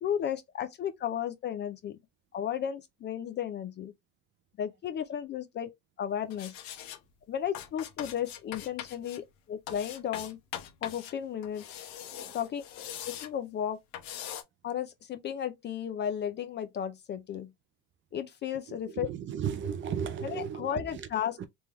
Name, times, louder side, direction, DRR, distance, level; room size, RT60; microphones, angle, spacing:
voice 1, 0.0-2.0 2.3-3.9 4.6-5.7 6.0-6.5 7.3-10.4 10.8-11.8 12.3-12.6 13.0-13.8 14.6-17.5 18.1-19.1 20.2-21.4, left 9 dB, 30° left, 0.4 m, -34 dB
sound 1, 6.3-7.0 7.5-9.2 9.7-11.1 11.4-13.3 13.9-14.4, left 10 dB, 75° left, 1.0 m, -42 dB
voice 2, 18.7-21.1 21.4-21.5, right 8 dB, 35° right, 0.4 m, -35 dB
3.4 x 3.3 x 2.9 m
cardioid pair, 160°, 36 cm